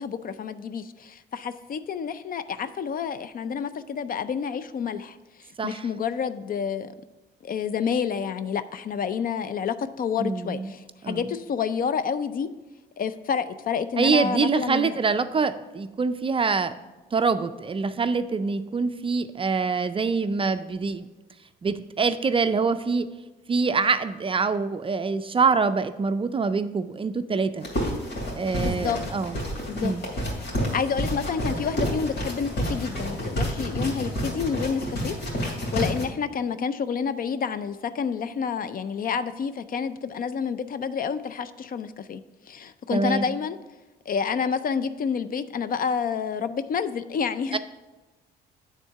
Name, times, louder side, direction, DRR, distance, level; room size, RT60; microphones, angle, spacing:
voice 1, 0.0-6.9 7.4-12.5 13.0-15.0 28.6-29.0 29.7-29.9 30.7-42.2 42.5-43.6 44.1-47.6, left 6 dB, 45° left, 13 dB, 0.4 m, -29 dB
voice 2, 10.2-10.7 11.0-11.2 14.0-16.7 17.1-21.1 21.6-23.1 23.5-27.7 28.3-29.4 29.8-30.0 42.9-43.3 47.5-47.6, right 4 dB, 25° right, 11 dB, 0.4 m, -25 dB
sound 1, 27.6-36.1, equal, 60° left, 2.7 m, -29 dB
9.0 x 3.7 x 5.6 m, 1.2 s
cardioid pair, 90°, 20 cm